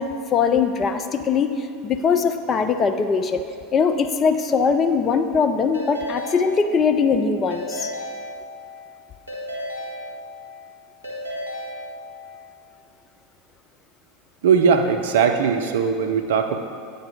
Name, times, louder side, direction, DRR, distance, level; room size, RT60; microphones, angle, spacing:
voice 1, 0.0-3.4 3.7-7.9, left 5 dB, 30° left, 7 dB, 0.4 m, -21 dB
Keyboard (musical) / Ringtone, 5.7-7.1 7.5-8.8 9.3-10.6 11.0-12.4, left 1 dB, 90° left, 1.3 m, -34 dB
voice 2, 14.4-16.6, right 6 dB, 60° right, 6 dB, 0.5 m, -19 dB
9.2 x 4.0 x 5.1 m, 2.4 s
figure-of-eight pair, 80°, 0 cm